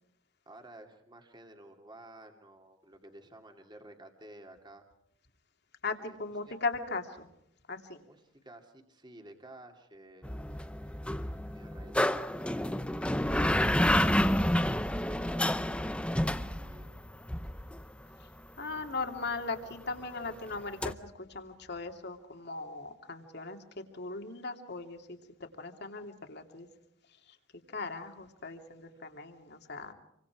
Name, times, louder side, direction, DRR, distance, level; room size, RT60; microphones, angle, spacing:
voice 1, 0.5-4.8 6.0-6.2 6.5-6.6 8.0-10.3 10.8-11.0 11.5-14.1 15.1-16.9 28.8-28.9, right 1 dB, 25° right, 4 dB, 2.6 m, -53 dB
voice 2, 5.8-7.3 7.7-8.0 18.2-18.3 18.6-26.7 27.3-27.4 27.7-29.9, left 3 dB, 55° left, 5 dB, 2.9 m, -38 dB
sound 1, 10.2-17.9 20.8-20.9, left 1 dB, 5° left, 0.9 m, -29 dB
28.5 x 24.5 x 4.8 m, 0.83 s
head